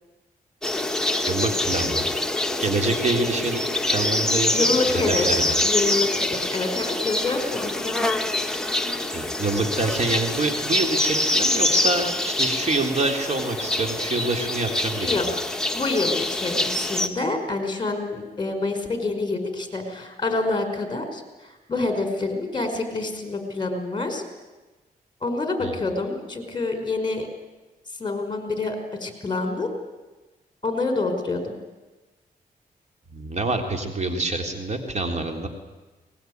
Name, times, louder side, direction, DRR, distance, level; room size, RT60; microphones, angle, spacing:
sound 1, 0.6-17.1, left 1 dB, 5° left, 2.0 m, -25 dB
voice 1, 1.3-2.1 2.6-5.5 9.1-15.2 25.6-25.7 33.1-35.5, right 2 dB, 45° right, 4 dB, 3.7 m, -26 dB
voice 2, 4.5-5.2 5.6-8.0 15.0-15.3 15.7-24.2 25.2-27.3 28.0-29.7 30.6-31.6, left 3 dB, 30° left, 6 dB, 5.1 m, -27 dB
22.5 x 20.0 x 9.5 m, 1.1 s
cardioid pair, 75°, 16 cm